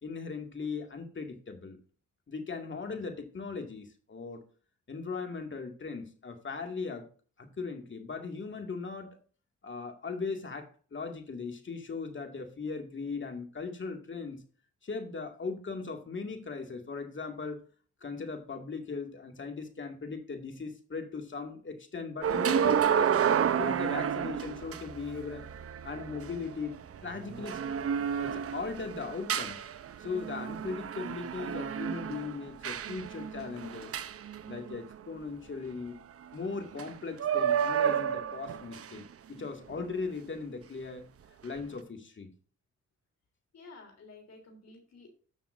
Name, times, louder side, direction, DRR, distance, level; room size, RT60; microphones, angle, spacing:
voice 1, 0.0-1.8 2.3-4.4 4.9-7.1 7.4-9.2 9.6-14.4 14.8-17.6 18.0-25.4 25.8-27.6 28.2-29.7 30.0-33.9 34.5-36.0 36.3-39.0 39.3-41.1 41.4-42.3, left 4 dB, 40° left, 2.2 m, -38 dB
sound 1, 22.2-35.0 36.7-36.9 37.2-39.0 39.7-39.9, right 8 dB, 50° right, 0.7 m, -31 dB
voice 2, 43.5-45.1, left 3 dB, 60° left, 3.4 m, -52 dB
13.0 x 6.5 x 2.6 m
cardioid pair, 90°, 30 cm